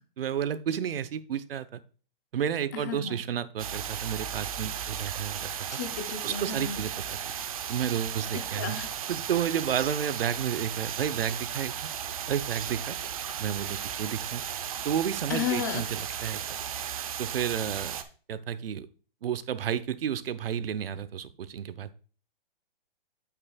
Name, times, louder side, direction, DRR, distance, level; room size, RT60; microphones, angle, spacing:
voice 1, 0.2-1.8 2.3-5.5 6.2-7.3 7.7-8.8 9.1-11.8 12.3-13.0 13.4-14.4 14.8-16.4 17.2-18.0 18.3-18.9 19.2-21.9, right 8 dB, 75° right, 14 dB, 0.9 m, -31 dB
voice 2, 2.7-3.2 5.7-6.8 8.5-8.9 15.3-15.8, left 8 dB, 20° left, 8 dB, 0.5 m, -33 dB
sound 1, 3.6-18.0, right 9 dB, 40° right, 0.7 m, -35 dB
8.6 x 8.5 x 2.3 m, 0.40 s
hypercardioid pair, 170°, 29 cm